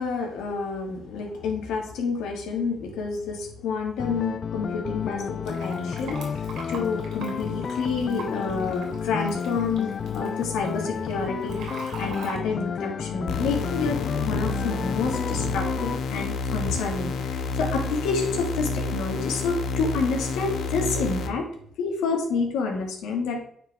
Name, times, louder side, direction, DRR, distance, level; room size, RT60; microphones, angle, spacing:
voice 1, 0.0-6.2 6.7-11.7 12.0-21.4 21.8-23.4, left 4 dB, 90° left, 1 dB, 1.8 m, -29 dB
sound 1, 4.0-16.0, left 7 dB, 50° left, 0.3 m, -31 dB
Fill (with liquid), 5.4-12.4, right 4 dB, 80° right, 2.9 m, -42 dB
sound 2, 13.3-21.3, left 3 dB, 70° left, 0.9 m, -29 dB
9.0 x 4.7 x 3.5 m, 0.63 s
cardioid pair, 90°, 0 cm